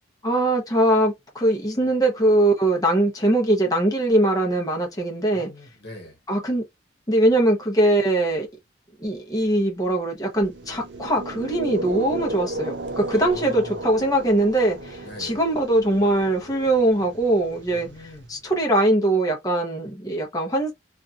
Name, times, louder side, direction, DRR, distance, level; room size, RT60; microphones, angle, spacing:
voice 1, 0.2-5.5 6.3-6.6 7.1-8.5 9.0-17.9 18.3-20.7, right 1 dB, 20° left, 0.8 m, -21 dB
voice 2, 5.3-6.2 13.1-13.9 15.0-15.4 17.7-18.3, left 1 dB, 60° left, 1.1 m, -42 dB
sound 1, 10.4-18.5, right 2 dB, 60° right, 0.6 m, -34 dB
2.9 x 2.5 x 2.4 m
head